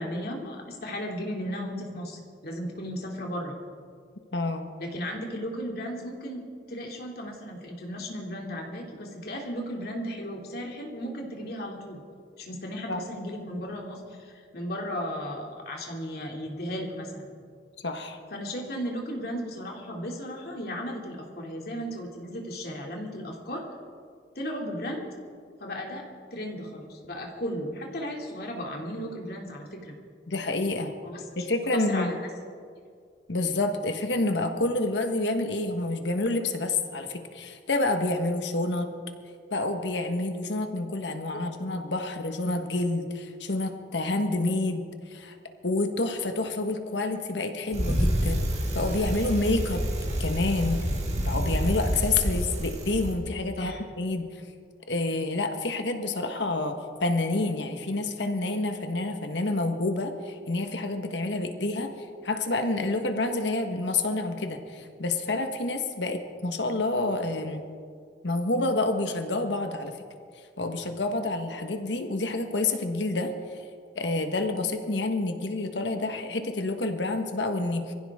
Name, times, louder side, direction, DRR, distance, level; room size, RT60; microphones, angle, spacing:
voice 1, 0.0-3.6 4.8-6.4 6.7-12.0 12.4-17.2 18.3-23.6 24.3-25.1 25.6-29.9 31.0-31.2 31.7-32.3 41.3-41.5 53.6-53.8, equal, 60° left, 0 dB, 2.7 m, -35 dB
voice 2, 4.3-4.7 12.9-13.0 17.8-18.2 30.3-30.9 31.4-32.1 33.3-38.9 39.5-44.8 45.1-45.3 45.6-48.5 48.7-49.9 50.2-50.8 51.2-54.3 54.9-61.9 62.2-67.6 68.2-69.9 70.6-73.3 73.9-77.9, left 2 dB, 80° left, 6 dB, 1.4 m, -28 dB
Bicycle, 47.7-53.1, equal, 40° right, 2.1 m, -28 dB
23.5 x 15.5 x 3.6 m, 2.1 s
head